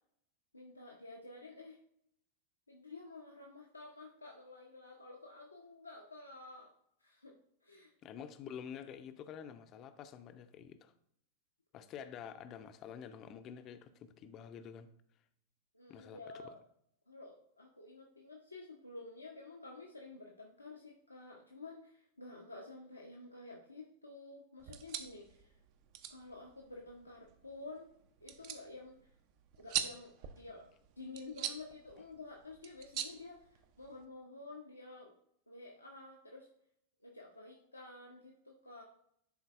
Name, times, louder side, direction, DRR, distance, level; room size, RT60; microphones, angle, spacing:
voice 1, 0.5-1.8 2.7-6.7 7.0-7.4 7.6-7.9 15.7-16.6 17.1-25.5 26.1-27.9 28.2-28.9 29.6-30.7 31.0-35.2 35.5-36.5 37.0-38.8, left 3 dB, 85° left, -1 dB, 0.7 m, -51 dB
voice 2, 8.0-10.9 11.7-14.9 15.9-16.5, left 8 dB, 35° left, 10 dB, 0.5 m, -48 dB
sound 1, 24.6-34.1, right 10 dB, 45° right, 0.5 m, -44 dB
10.5 x 3.9 x 2.4 m, 0.71 s
figure-of-eight pair, 90°, 0 cm